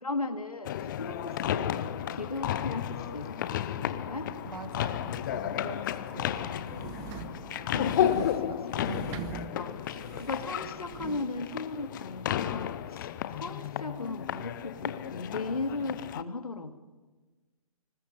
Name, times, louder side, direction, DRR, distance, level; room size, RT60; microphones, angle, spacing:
voice 1, 0.0-1.8 2.1-4.3 6.4-7.8 8.4-8.8 9.5-16.8, left 3 dB, 85° left, 8 dB, 2.1 m, -37 dB
sound 1, 0.6-16.2, left 11 dB, 35° left, 0.8 m, -33 dB
sound 2, 1.7-11.1, right 2 dB, 40° right, 7.5 m, -49 dB
voice 2, 4.5-5.8 6.1-6.5 7.7-9.3, right 2 dB, 85° right, 9 dB, 2.0 m, -40 dB
sound 3, 6.3-11.3, right 9 dB, 20° right, 1.1 m, -44 dB
28.0 x 21.0 x 5.4 m, 1.3 s
figure-of-eight pair, 135°, 19 cm